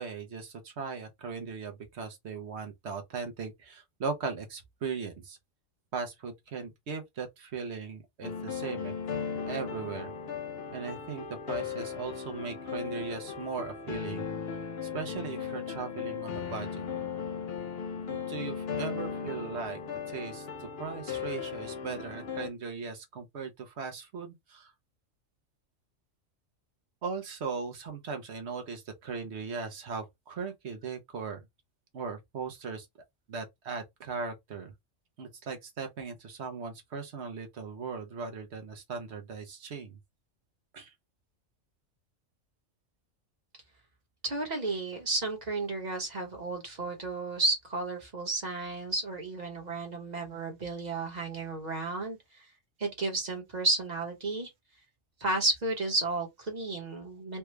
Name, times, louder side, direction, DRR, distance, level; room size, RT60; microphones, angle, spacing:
voice 1, 0.0-5.4 5.9-8.9 9.5-10.1 10.7-14.2 14.9-16.7 18.1-19.8 20.1-24.7 27.0-31.4 31.9-32.9 33.3-34.7 35.2-40.0 40.7-40.9, right 5 dB, 60° right, 1.0 m, -38 dB
sound 1, 8.2-22.5, left 6 dB, 55° left, 0.8 m, -37 dB
voice 2, 44.2-52.2 52.8-54.5 55.2-57.4, right 2 dB, 35° right, 1.2 m, -32 dB
3.4 x 2.3 x 3.1 m
omnidirectional pair, 1.3 m